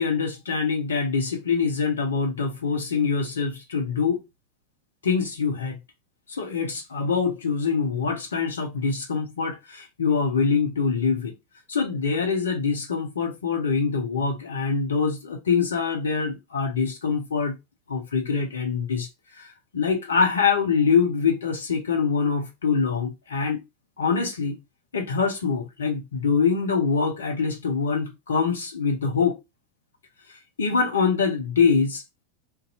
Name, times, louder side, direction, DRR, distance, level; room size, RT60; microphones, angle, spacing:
voice 1, 0.0-4.2 5.0-5.8 6.3-11.3 11.7-17.6 17.9-19.1 19.3-23.6 24.0-24.6 24.9-29.4 30.6-32.0, left 5 dB, 75° left, 0.7 m, -24 dB
2.6 x 2.2 x 4.0 m
figure-of-eight pair, 85°, 0 cm